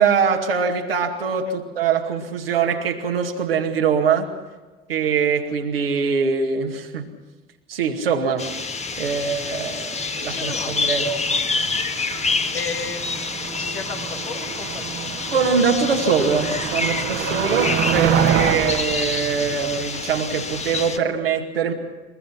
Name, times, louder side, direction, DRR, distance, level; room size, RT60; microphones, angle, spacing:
voice 1, 0.0-4.3 4.9-7.1 7.7-8.5 9.0-11.2 15.3-21.7, right 6 dB, 80° right, 2 dB, 2.2 m, -22 dB
sound 1, 8.4-21.0, left 4 dB, 25° left, 1.5 m, -27 dB
voice 2, 10.2-11.4 12.5-15.1, left 5 dB, 80° left, 4 dB, 2.0 m, -35 dB
Motor vehicle (road), 10.4-20.7, right 9 dB, 55° right, 1.6 m, -27 dB
23.0 x 22.5 x 5.8 m, 1.2 s
figure-of-eight pair, 55°, 29 cm